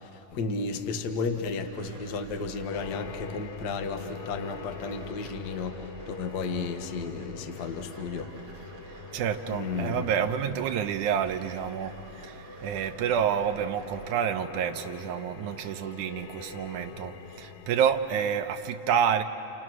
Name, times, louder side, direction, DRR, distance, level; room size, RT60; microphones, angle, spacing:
voice 1, 0.0-8.3 9.5-10.1, left 4 dB, 50° left, 6 dB, 1.2 m, -33 dB
sound 1, 1.2-14.2, right 4 dB, 50° right, 2.2 m, -48 dB
sound 2, 2.7-18.2, left 7 dB, 70° left, 2.0 m, -44 dB
voice 2, 9.1-11.9 12.2-12.3 12.6-19.2, right 8 dB, 75° right, 5 dB, 2.3 m, -28 dB
30.0 x 29.0 x 6.2 m, 2.7 s
omnidirectional pair, 3.6 m